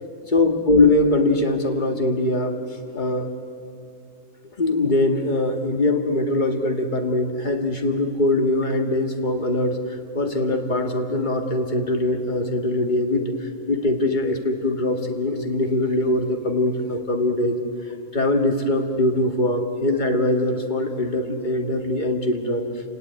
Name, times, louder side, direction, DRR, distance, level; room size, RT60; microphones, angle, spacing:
voice 1, 0.3-2.6 2.9-3.3 4.6-9.8 10.2-17.6 18.1-22.7, left 2 dB, 35° left, 4 dB, 1.9 m, -22 dB
28.5 x 18.0 x 9.5 m, 2.5 s
omnidirectional pair, 1.4 m